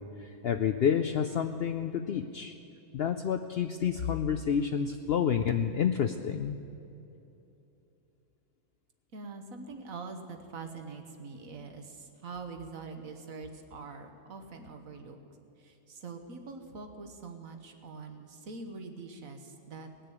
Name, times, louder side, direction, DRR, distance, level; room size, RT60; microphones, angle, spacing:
voice 1, 0.0-2.5 2.9-6.6, left 8 dB, 70° left, 8 dB, 0.6 m, -29 dB
voice 2, 9.1-15.2 15.6-19.9, right 4 dB, 70° right, 6 dB, 1.6 m, -44 dB
18.5 x 6.7 x 9.0 m, 2.9 s
omnidirectional pair, 1.5 m